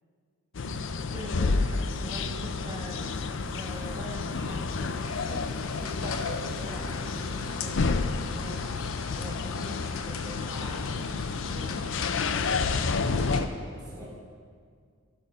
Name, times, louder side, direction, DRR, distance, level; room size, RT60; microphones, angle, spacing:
sound 1, 0.5-13.4, left 4 dB, 60° left, 0.5 m, -30 dB
voice 1, 1.1-12.6 13.7-14.0, equal, 15° right, -5 dB, 1.3 m, -43 dB
sound 2, 3.4-7.8, equal, 45° left, 3.3 m, -44 dB
sound 3, 4.9-13.5, left 4 dB, 75° left, 0.9 m, -38 dB
voice 2, 13.7-14.1, equal, 15° left, -4 dB, 2.9 m, -49 dB
12.5 x 11.5 x 5.6 m, 2.1 s
head